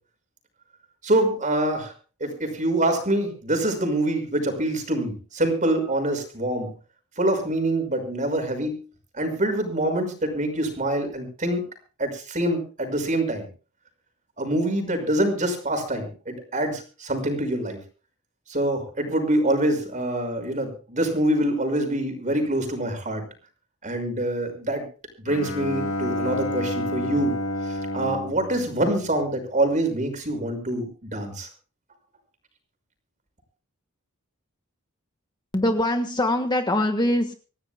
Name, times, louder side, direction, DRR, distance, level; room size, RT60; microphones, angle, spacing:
voice 1, 1.0-1.9 2.2-6.7 7.2-8.8 9.1-11.6 12.0-13.5 14.4-17.8 18.5-23.2 23.8-24.8 25.2-27.3 27.6-31.5, right 1 dB, 35° right, 7 dB, 5.7 m, -25 dB
Bowed string instrument, 25.3-29.6, left 1 dB, 65° left, 2.2 m, -30 dB
voice 2, 35.5-37.3, left 1 dB, 20° left, 5 dB, 1.4 m, -23 dB
26.0 x 16.0 x 2.2 m, 0.36 s
head